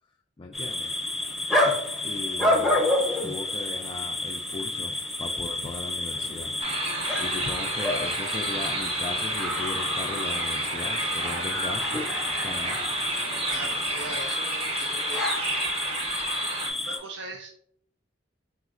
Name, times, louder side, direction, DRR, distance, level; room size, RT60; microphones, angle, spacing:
voice 1, 0.4-0.9 2.0-2.8 3.2-6.6 7.2-12.0 12.4-12.8, left 3 dB, 25° left, 1 dB, 0.3 m, -38 dB
sound 1, 0.5-17.0, left 2 dB, ahead, 0.8 m, -29 dB
sound 2, 6.1-14.2, equal, 85° right, 1.0 m, -47 dB
sound 3, 6.6-16.7, right 2 dB, 30° right, 0.7 m, -31 dB
voice 2, 13.5-15.3 16.8-17.5, right 3 dB, 70° right, 2 dB, 0.4 m, -39 dB
4.1 x 3.9 x 2.4 m, 0.65 s
head